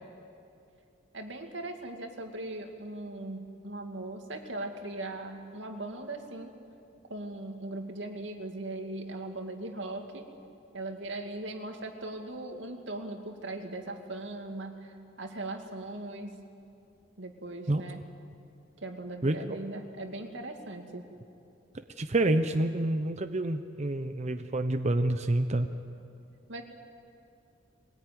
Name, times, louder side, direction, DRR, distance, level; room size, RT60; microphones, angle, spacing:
voice 1, 1.1-6.5 7.1-10.3 10.7-16.4 17.2-18.0 18.8-21.0 26.5-26.6, right 2 dB, 90° right, 4 dB, 2.4 m, -39 dB
voice 2, 22.0-25.7, right 1 dB, 40° right, 8 dB, 0.7 m, -28 dB
22.5 x 18.5 x 9.4 m, 2.5 s
head